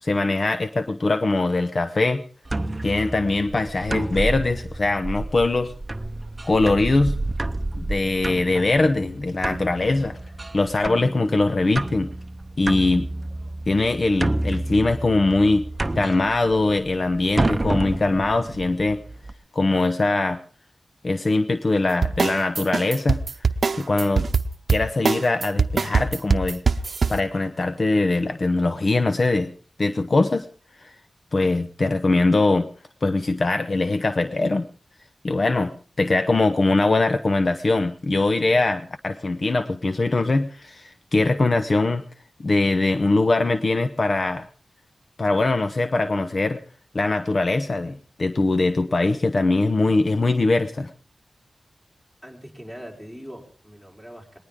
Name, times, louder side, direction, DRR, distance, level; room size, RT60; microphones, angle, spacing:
voice 1, 0.0-2.2 2.8-5.7 6.4-7.2 7.8-10.2 10.5-12.1 12.6-13.1 13.7-15.7 16.0-19.0 19.5-20.4 21.0-23.2 23.7-24.3 24.7-26.6 27.1-29.5 29.8-30.5 30.8-30.9 31.3-32.7 33.0-34.7 35.2-35.7 36.0-42.0 42.4-44.5 45.2-46.6 46.9-50.9, left 2 dB, 55° left, 9 dB, 0.8 m, -22 dB
sound 1, 2.5-19.3, right 2 dB, 30° right, 0.7 m, -30 dB
sound 2, 22.0-27.2, right 5 dB, 75° right, 0.7 m, -22 dB
voice 2, 52.2-54.4, equal, 15° left, 0 dB, 4.9 m, -41 dB
20.0 x 19.0 x 3.7 m, 0.40 s
wide cardioid pair, 80°, 0 cm